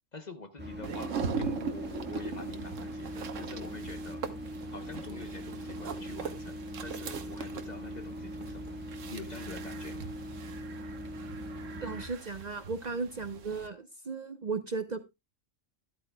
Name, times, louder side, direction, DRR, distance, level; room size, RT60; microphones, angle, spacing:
voice 1, 0.1-4.2 4.7-8.8 9.1-10.1, left 3 dB, 40° left, 0.9 m, -46 dB
sound 1, 0.6-12.0, equal, 10° right, 1.4 m, -41 dB
sound 2, 0.8-13.7, right 5 dB, 80° right, 1.3 m, -40 dB
voice 2, 11.8-15.1, right 4 dB, 40° right, 0.8 m, -36 dB
12.5 x 12.5 x 2.3 m
omnidirectional pair, 1.3 m